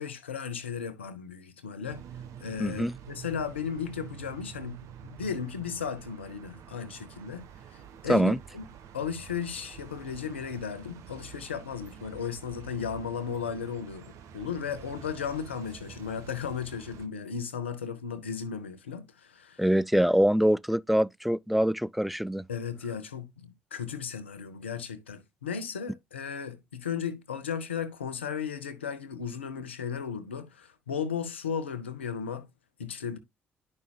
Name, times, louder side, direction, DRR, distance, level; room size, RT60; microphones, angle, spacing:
voice 1, 0.0-2.0 2.4-7.8 8.0-8.6 8.9-19.7 22.5-32.5 32.8-33.2, left 7 dB, 85° left, 0.8 m, -35 dB
sound 1, 1.8-17.1, right 8 dB, 60° right, 1.0 m, -48 dB
voice 2, 2.6-2.9 8.1-8.4 19.6-22.4, equal, ahead, 0.3 m, -24 dB
11.0 x 5.4 x 2.3 m
figure-of-eight pair, 45°, 6 cm